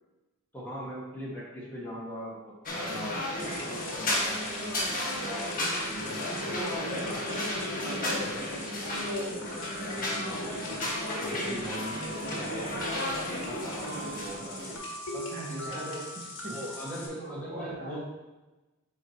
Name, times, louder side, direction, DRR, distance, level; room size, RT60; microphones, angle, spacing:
voice 1, 0.5-3.6 3.9-5.6 5.9-10.8 11.2-13.3 13.6-14.7 15.1-16.0 16.4-18.0, equal, 10° left, -7 dB, 1.7 m, -41 dB
sound 1, 2.7-14.8, left 1 dB, 40° left, 1.5 m, -33 dB
sound 2, 3.4-17.1, left 1 dB, 65° left, 1.5 m, -42 dB
voice 2, 15.3-16.6 17.1-18.0, right 2 dB, 40° right, -4 dB, 1.4 m, -41 dB
9.5 x 3.7 x 2.9 m, 1.1 s
head